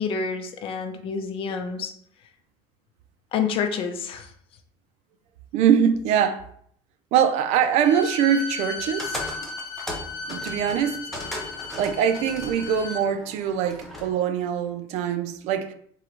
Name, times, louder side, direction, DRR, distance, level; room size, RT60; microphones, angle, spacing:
voice 1, 0.0-1.9 3.3-4.3, left 6 dB, 50° left, 0.7 m, -28 dB
voice 2, 5.5-6.5 7.1-9.5 10.3-11.0 11.8-15.7, right 8 dB, 70° right, 0.5 m, -23 dB
Bowed string instrument, 7.8-13.0, left 4 dB, 70° left, 1.3 m, -35 dB
sound 1, 9.0-14.1, left 1 dB, ahead, 1.0 m, -37 dB
3.9 x 2.9 x 4.5 m
cardioid pair, 135°, 12 cm